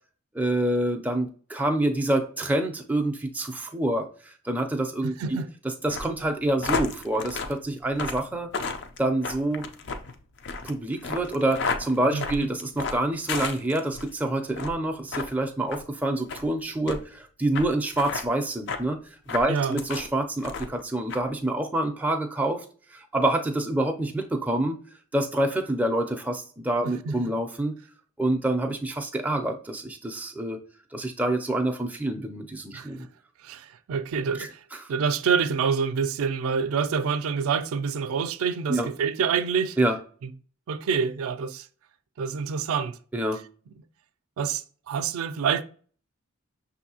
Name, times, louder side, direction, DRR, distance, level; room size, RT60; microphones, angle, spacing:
voice 1, 0.3-5.2 5.8-8.5 9.0-9.7 10.6-19.0 19.3-22.6 22.9-24.8 25.1-27.7 28.2-30.6 30.9-33.1 34.4-34.9 38.7-38.9 39.8-40.0 43.1-43.4, right 1 dB, 5° right, 0.4 m, -27 dB
sound 1, 5.9-14.1 14.5-14.8 15.1-15.3 15.7-15.8 16.3-16.4 16.9-17.0 17.5-17.7 17.9-18.2 18.7-18.8 19.3-20.1 20.4-20.8 21.1-21.2, left 4 dB, 55° left, 0.4 m, -32 dB
voice 2, 12.1-12.5 19.5-19.8 26.8-27.1 32.7-32.9 33.4-34.6 34.9-39.8 40.7-41.7 42.2-43.0 44.4-45.6, right 6 dB, 80° right, 0.4 m, -27 dB
6.1 x 2.6 x 2.8 m
head